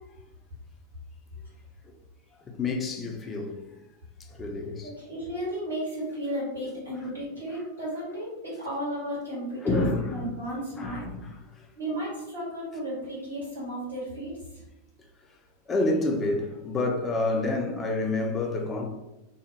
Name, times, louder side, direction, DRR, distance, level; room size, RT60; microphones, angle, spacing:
voice 1, 2.4-3.8 4.2-4.9 7.5-7.6 9.6-10.3 10.8-11.7 15.3-15.4 15.7-18.9, left 2 dB, 20° left, 0.4 m, -29 dB
voice 2, 4.8-11.0 11.7-14.3, equal, 80° right, 1.4 m, -34 dB
2.7 x 2.0 x 2.7 m
figure-of-eight pair, 90°, 0 cm